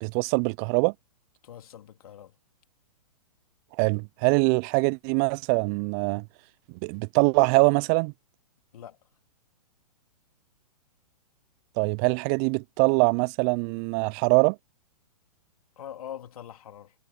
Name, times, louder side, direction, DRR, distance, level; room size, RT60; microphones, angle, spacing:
voice 1, 0.0-0.9 3.8-6.2 6.8-8.1 11.8-14.6, right 35 dB, 30° right, 0.4 m, -23 dB
voice 2, 1.4-2.3 8.7-9.0 15.8-16.9, left 10 dB, 65° left, 3.0 m, -43 dB
hypercardioid pair, 120°, 20 cm